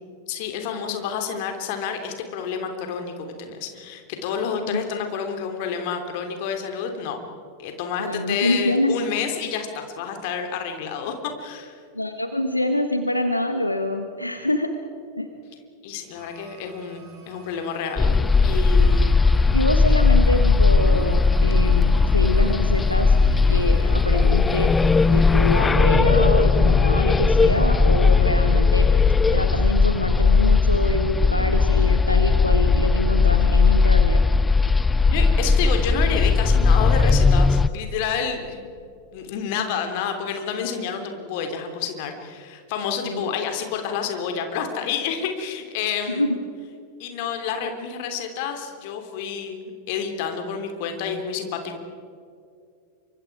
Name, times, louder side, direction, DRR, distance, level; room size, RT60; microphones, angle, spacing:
voice 1, 0.3-7.2 7.6-11.7 15.8-19.1 35.1-38.7 39.1-46.4 47.0-51.8, left 6 dB, 50° left, 5 dB, 3.3 m, -29 dB
voice 2, 8.0-9.0 11.9-14.7 15.2-15.3 19.5-23.2 23.5-24.7 25.1-28.9 29.3-34.2 43.0-43.2 46.1-46.4, left 1 dB, 85° left, 7 dB, 1.3 m, -25 dB
sound 1, 16.1-25.7, right 6 dB, 30° right, 7.6 m, -48 dB
sound 2, 18.0-37.7, left 4 dB, 10° left, 0.5 m, -18 dB
27.5 x 24.5 x 4.9 m, 2.4 s
figure-of-eight pair, 90°, 0 cm